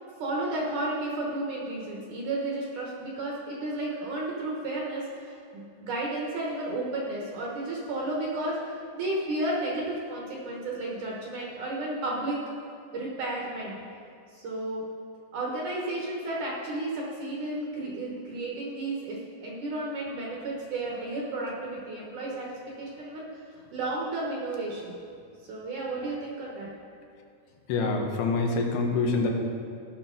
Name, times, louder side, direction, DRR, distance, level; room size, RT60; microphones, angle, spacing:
voice 1, 0.2-8.6 8.9-12.4 12.9-13.8 14.3-14.9 15.3-23.3 23.7-25.0 25.5-26.7, right 2 dB, 65° right, -3 dB, 2.1 m, -32 dB
voice 2, 27.7-29.3, left 3 dB, 85° left, 1 dB, 3.0 m, -26 dB
16.5 x 5.9 x 3.8 m, 2.5 s
omnidirectional pair, 4.6 m